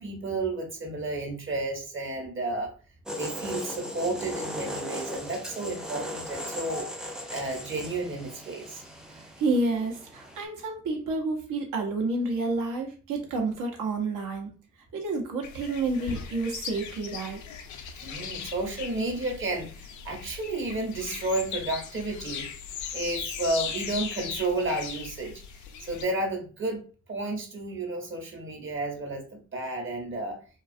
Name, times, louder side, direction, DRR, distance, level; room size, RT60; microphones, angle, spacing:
voice 1, 0.0-2.7 3.2-6.9 7.3-8.8 18.0-22.5 22.9-25.4 25.8-30.4, right 2 dB, 35° right, 2 dB, 1.0 m, -32 dB
sound 1, 3.1-10.4, equal, ahead, 0.4 m, -38 dB
voice 2, 9.1-14.5 14.9-17.4, right 3 dB, 65° right, 2 dB, 0.9 m, -29 dB
sound 2, 15.4-26.1, left 7 dB, 55° left, 0.5 m, -38 dB
2.4 x 2.3 x 2.5 m, 0.38 s
hypercardioid pair, 60°, 35 cm